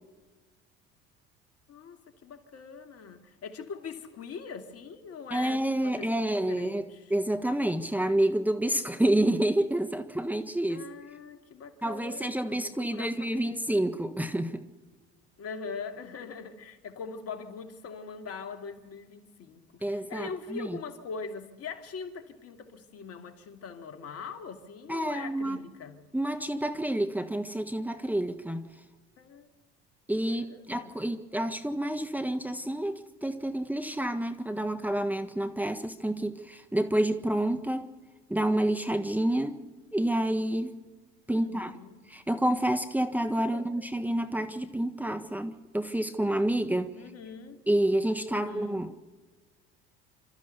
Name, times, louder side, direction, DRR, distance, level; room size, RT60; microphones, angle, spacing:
voice 1, 1.7-7.1 10.7-13.6 15.4-26.0 29.2-29.5 30.4-31.0 41.3-42.0 43.5-44.0 47.0-47.6 48.3-48.8, left 5 dB, 50° left, 2.6 m, -42 dB
voice 2, 5.3-10.8 11.8-14.6 19.8-20.8 24.9-25.6 26.1-28.7 30.1-37.8 38.3-39.6 39.9-40.8 41.3-41.7 42.1-46.9 47.7-49.0, right 1 dB, 5° right, 1.4 m, -29 dB
28.5 x 13.5 x 6.9 m
hypercardioid pair, 70°, 30 cm